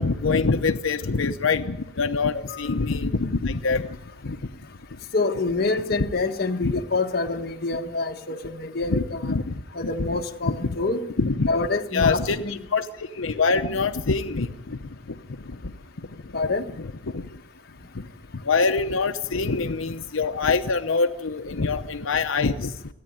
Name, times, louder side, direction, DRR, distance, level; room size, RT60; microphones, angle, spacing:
voice 1, 0.0-3.8 4.2-4.4 6.6-6.7 8.9-9.4 10.5-10.6 11.2-11.5 11.9-12.9 13.2-14.5 17.1-17.2 18.5-22.7, left 4 dB, 90° left, 7 dB, 0.8 m, -24 dB
voice 2, 2.3-2.7 5.1-9.4 9.7-11.1 11.5-12.6 16.3-16.7, left 3 dB, 50° left, 3 dB, 1.5 m, -27 dB
29.0 x 9.9 x 9.3 m, 0.83 s
head